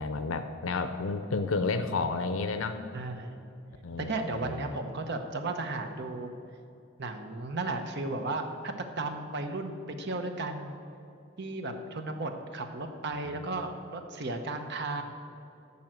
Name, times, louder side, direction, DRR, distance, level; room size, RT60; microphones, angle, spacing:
voice 1, 0.0-2.8 3.8-4.8 13.3-13.5, left 3 dB, 90° left, 9 dB, 0.6 m, -31 dB
voice 2, 2.9-3.4 4.0-6.3 7.0-10.8 11.4-15.0, right 2 dB, 60° right, 6 dB, 0.9 m, -34 dB
14.0 x 5.5 x 7.7 m, 2.7 s
head